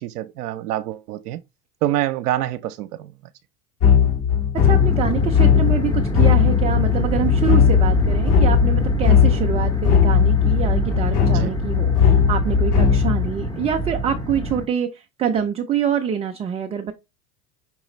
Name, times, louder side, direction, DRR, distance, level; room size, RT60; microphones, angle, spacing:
voice 1, 0.0-1.4 1.8-3.1 11.3-11.5, right 13 dB, 80° right, 0.6 m, -26 dB
sound 1, 3.8-13.3, left 8 dB, 65° left, 2.8 m, -18 dB
voice 2, 4.5-16.9, right 8 dB, 15° right, 0.3 m, -25 dB
sound 2, 4.6-14.7, right 2 dB, 10° left, 0.7 m, -26 dB
5.8 x 3.0 x 3.0 m
hypercardioid pair, 85°, 45 cm